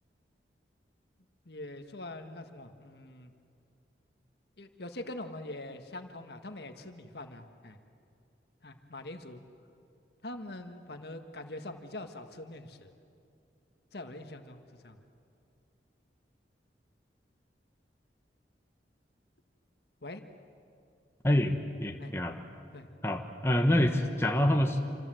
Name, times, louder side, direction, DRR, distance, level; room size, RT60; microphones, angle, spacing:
voice 1, 1.4-3.3 4.6-7.8 8.6-9.4 10.2-12.9 13.9-15.0 20.0-20.2 22.0-22.1 22.7-22.9, left 2 dB, 65° left, 6 dB, 1.7 m, -43 dB
voice 2, 21.2-22.4 23.0-24.8, left 1 dB, 15° left, 3 dB, 1.4 m, -26 dB
28.0 x 27.0 x 7.8 m, 2.5 s
head